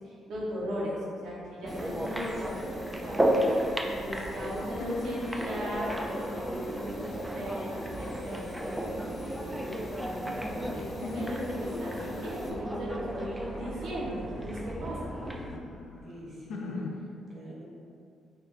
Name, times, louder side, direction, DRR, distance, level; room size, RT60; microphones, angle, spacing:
voice 1, 0.1-3.3 3.8-15.1, equal, 80° right, -6 dB, 1.1 m, -38 dB
sound 1, 1.6-15.6, equal, 10° right, 0.4 m, -34 dB
sound 2, 1.7-12.5, left 1 dB, 35° left, 0.7 m, -52 dB
sound 3, 4.0-8.2 8.8-10.7 11.0-14.4 14.9-17.0, left 2 dB, 75° left, 0.3 m, -42 dB
voice 2, 10.5-10.8 16.0-17.6, equal, 45° right, -4 dB, 1.0 m, -46 dB
4.2 x 2.4 x 3.2 m, 2.4 s
cardioid pair, 90°, 0 cm